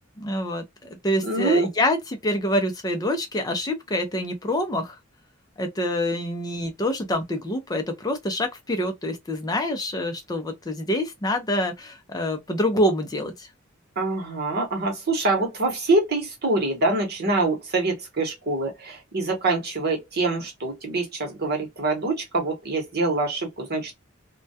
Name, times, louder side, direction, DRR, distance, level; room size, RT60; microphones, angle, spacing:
voice 1, 0.2-0.6 1.0-5.0 5.6-13.5, left 1 dB, 20° left, 0.5 m, -26 dB
voice 2, 1.2-1.7 14.0-23.9, right 2 dB, 55° right, 0.9 m, -25 dB
2.2 x 2.2 x 2.6 m
head